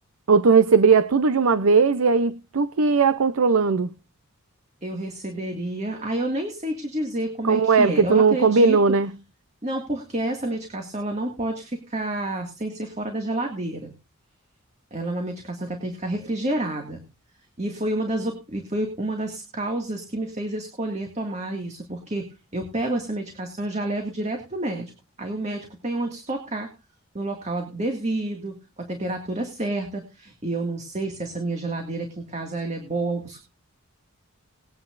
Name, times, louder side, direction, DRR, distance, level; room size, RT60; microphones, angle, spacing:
voice 1, 0.3-3.9 7.4-9.1, right 4 dB, 90° right, 0.6 m, -18 dB
voice 2, 4.8-8.8 9.6-13.9 14.9-17.0 17.6-22.3 22.5-24.9 25.2-26.7 27.1-33.4, right 1 dB, 35° right, 2.0 m, -29 dB
20.0 x 9.6 x 2.5 m
head